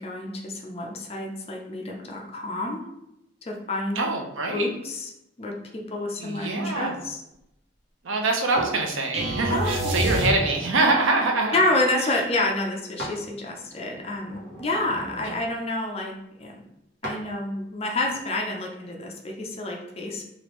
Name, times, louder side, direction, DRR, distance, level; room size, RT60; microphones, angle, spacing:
voice 1, 0.0-2.9 3.5-4.0 4.5-5.1 5.4-7.2 9.5-10.0 11.5-16.1 16.4-16.6 17.0-20.3, left 2 dB, 30° left, 1 dB, 0.4 m, -28 dB
voice 2, 4.0-4.7 6.2-7.0 8.0-11.6, right 2 dB, 90° right, 2 dB, 0.6 m, -24 dB
sound 1, 8.6-8.8 9.4-10.8 13.0-13.2 13.6-15.5 17.0-17.2 18.0-18.2, equal, 70° right, 1.1 m, -38 dB
sound 2, 9.1-10.9, right 1 dB, 30° right, 0.7 m, -27 dB
3.3 x 2.5 x 3.0 m, 0.86 s
head